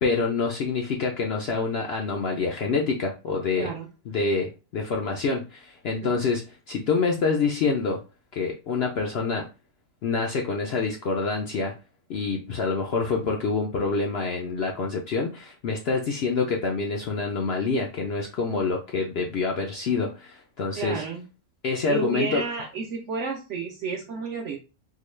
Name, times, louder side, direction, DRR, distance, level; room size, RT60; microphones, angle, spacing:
voice 1, 0.0-3.7 4.1-8.0 8.3-9.5 10.0-11.7 12.1-21.0 21.6-22.4, left 4 dB, 65° left, 1 dB, 0.6 m, -26 dB
voice 2, 3.6-3.9 6.0-6.1 20.7-21.2 21.9-24.6, right 5 dB, 65° right, 0 dB, 0.8 m, -31 dB
3.7 x 2.2 x 3.1 m, 0.31 s
omnidirectional pair, 1.6 m